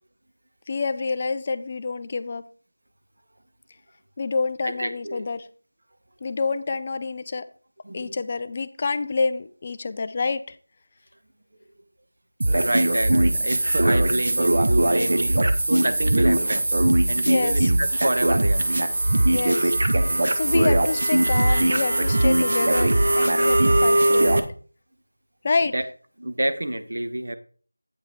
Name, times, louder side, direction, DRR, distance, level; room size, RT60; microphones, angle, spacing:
voice 1, 0.7-2.4 4.2-5.5 6.2-7.5 7.9-10.6 17.2-17.7 19.3-19.7 20.3-24.4 25.4-25.7, left 4 dB, 15° left, 12 dB, 0.3 m, -27 dB
voice 2, 4.6-5.2 7.8-8.2 12.5-15.4 15.7-16.7 17.1-18.6 25.7-25.8 26.2-27.4, right 1 dB, 50° right, 8 dB, 1.0 m, -28 dB
sound 1, 12.4-24.4, right 1 dB, 35° right, 0.7 m, -20 dB
8.7 x 5.5 x 4.5 m, 0.41 s
figure-of-eight pair, 180°, 0 cm